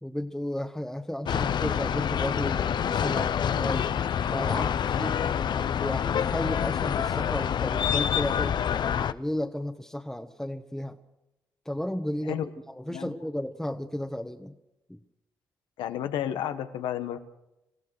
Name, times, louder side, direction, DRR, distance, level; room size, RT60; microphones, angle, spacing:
voice 1, 0.0-3.9 4.3-5.1 5.8-11.0 11.6-12.4 12.7-14.5 14.9-15.0, left 1 dB, 5° left, 4 dB, 1.4 m, -33 dB
sound 1, 1.3-9.1, left 8 dB, 65° left, 0.8 m, -27 dB
voice 2, 15.8-17.2, left 10 dB, 85° left, 10 dB, 1.4 m, -32 dB
27.5 x 15.5 x 6.5 m, 0.95 s
supercardioid pair, 55°, 8 cm